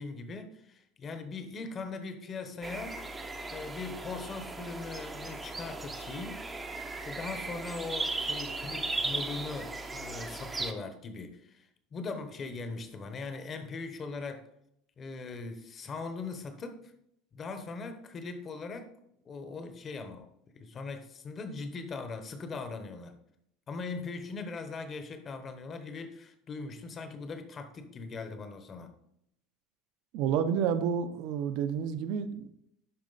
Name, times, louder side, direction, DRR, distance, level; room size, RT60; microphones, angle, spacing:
voice 1, 0.0-3.0 3.5-6.4 7.0-14.5 15.0-16.9 17.3-18.9 19.2-20.3 20.5-23.2 23.7-28.9, left 4 dB, 25° left, 8 dB, 1.0 m, -40 dB
sound 1, 2.6-10.7, right 3 dB, 10° right, 0.7 m, -37 dB
voice 2, 30.1-32.5, right 7 dB, 55° right, 10 dB, 0.8 m, -30 dB
11.5 x 4.3 x 4.1 m, 0.76 s
cardioid pair, 155°, 0 cm